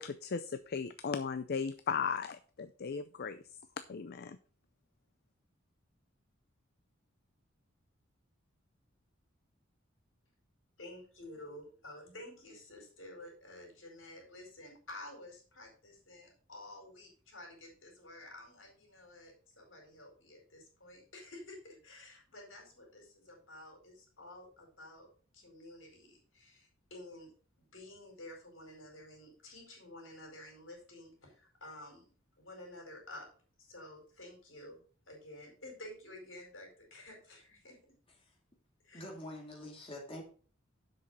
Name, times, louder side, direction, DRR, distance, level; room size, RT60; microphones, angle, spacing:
voice 1, 0.0-3.4 3.9-4.4, left 6 dB, 55° left, 12 dB, 0.5 m, -37 dB
voice 2, 10.8-25.1 25.3-27.3 27.6-32.0 32.4-33.3 33.6-37.8 38.8-39.0, left 1 dB, 70° left, 1 dB, 4.6 m, -51 dB
voice 3, 38.9-40.2, left 1 dB, 30° left, -1 dB, 2.7 m, -45 dB
7.5 x 6.3 x 5.4 m, 0.41 s
head